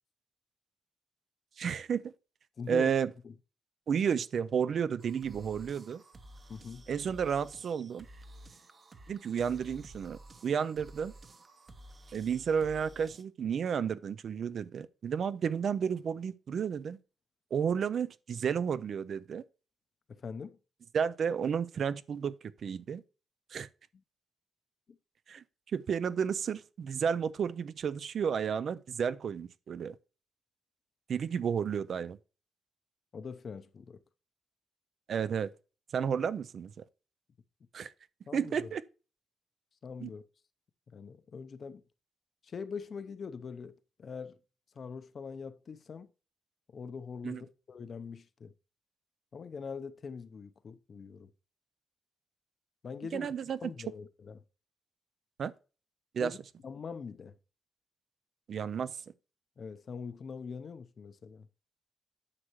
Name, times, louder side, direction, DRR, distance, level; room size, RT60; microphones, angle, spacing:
voice 1, 1.6-2.1 2.7-3.1 3.9-6.0 6.9-8.1 9.1-11.1 12.1-17.0 17.5-19.4 20.9-22.3 22.6-23.0 23.5-23.7 25.3-25.4 25.7-30.0 31.1-32.2 35.1-35.5 35.9-36.7 37.7-37.9 38.3-38.8 40.0-40.1 47.2-47.4 53.1-53.6 55.4-55.5 56.1-56.3 58.5-58.9, right 7 dB, 55° right, 0.4 m, -32 dB
voice 2, 2.6-2.9 3.2-3.3 6.5-6.8 20.1-20.6 24.9-25.0 33.1-34.0 38.3-38.5 39.8-40.2 40.9-41.8 42.4-44.4 44.7-46.1 46.7-48.5 49.3-51.3 52.8-53.3 53.6-54.4 56.2-56.4 56.6-57.3 59.6-61.5, left 5 dB, 45° left, 0.6 m, -43 dB
sound 1, 5.0-13.2, right 1 dB, 35° right, 0.9 m, -53 dB
9.8 x 6.4 x 3.0 m
cardioid pair, 125°, 0 cm